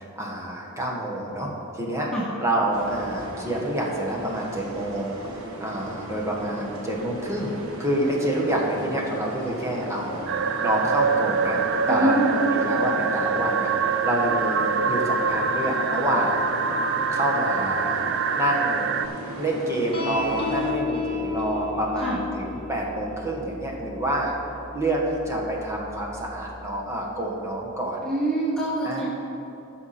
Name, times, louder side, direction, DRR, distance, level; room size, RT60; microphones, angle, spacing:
voice 1, 0.0-2.1 2.4-11.6 11.9-16.4 17.1-18.0 18.3-18.9 19.4-24.3 24.7-28.0 28.8-29.1, right 1 dB, 15° right, -2 dB, 1.5 m, -27 dB
sound 1, 2.7-20.7, right 1 dB, 90° right, 1.3 m, -37 dB
sound 2, 10.3-19.1, right 5 dB, 55° right, 0.4 m, -25 dB
voice 2, 11.9-12.4 22.0-22.2 28.0-29.1, right 1 dB, 5° left, -7 dB, 1.1 m, -25 dB
sound 3, 19.9-26.6, left 3 dB, 25° left, 1.3 m, -33 dB
15.5 x 5.8 x 4.4 m, 2.9 s
head